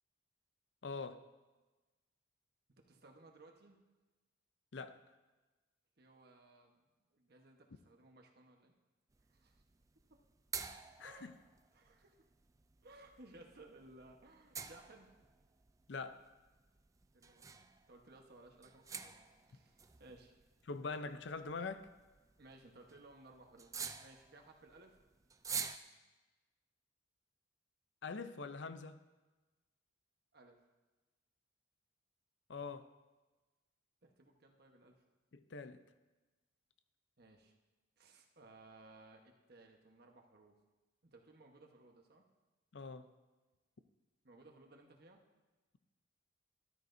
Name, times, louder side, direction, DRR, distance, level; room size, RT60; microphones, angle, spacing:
voice 1, 0.8-1.3 4.7-5.0 11.0-11.3 15.9-16.2 20.7-21.9 28.0-29.0 32.5-32.9 35.3-35.8 42.7-43.1, left 4 dB, 65° left, 11 dB, 0.6 m, -44 dB
voice 2, 2.8-3.8 6.0-8.7 9.3-9.6 11.0-11.3 11.7-12.3 12.8-15.1 17.1-19.2 19.4-20.3 21.2-21.3 22.4-25.0 30.3-30.6 34.0-35.0 37.2-37.5 38.0-40.5 41.0-42.2 44.2-45.2, right 2 dB, 55° right, 3 dB, 1.2 m, -60 dB
sound 1, 9.1-25.8, right 6 dB, 15° right, 0.4 m, -49 dB
13.0 x 12.5 x 2.7 m, 1.2 s
head